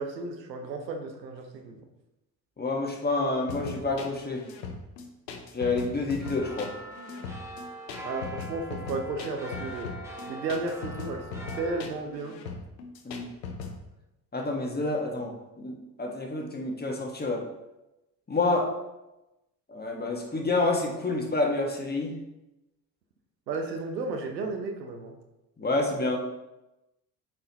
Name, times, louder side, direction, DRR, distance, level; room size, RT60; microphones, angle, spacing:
voice 1, 0.0-1.8 8.0-9.9 10.3-12.4 23.5-25.2, right 3 dB, 85° right, 5 dB, 0.8 m, -33 dB
voice 2, 2.6-4.4 5.5-6.7 13.0-13.3 14.3-17.4 18.3-18.7 19.7-22.1 25.6-26.2, left 2 dB, 20° left, 1 dB, 1.6 m, -28 dB
sound 1, 3.5-13.8, left 5 dB, 80° left, 0.9 m, -39 dB
sound 2, 6.2-11.8, equal, 5° right, 1.7 m, -42 dB
8.6 x 4.7 x 3.0 m, 0.98 s
hypercardioid pair, 55°, 49 cm